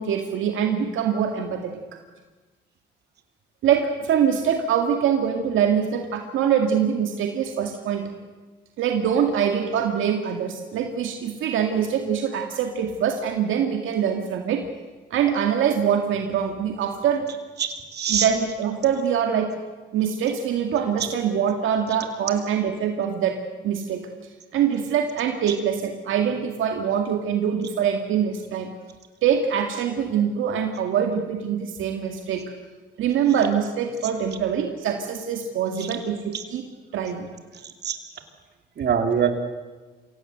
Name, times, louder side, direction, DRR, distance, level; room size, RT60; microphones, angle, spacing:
voice 1, 0.0-2.0 3.6-8.0 8.8-14.6 15.1-17.3 18.1-19.5 19.9-23.4 23.6-24.1 24.5-28.7 29.2-32.5 33.0-36.6 36.9-37.3, right 8 dB, 80° right, 4 dB, 2.1 m, -24 dB
voice 2, 17.6-18.3 37.8-38.0 38.8-39.3, right 7 dB, 55° right, 5 dB, 3.0 m, -23 dB
25.5 x 17.5 x 7.9 m, 1.3 s
cardioid pair, 90°, 20 cm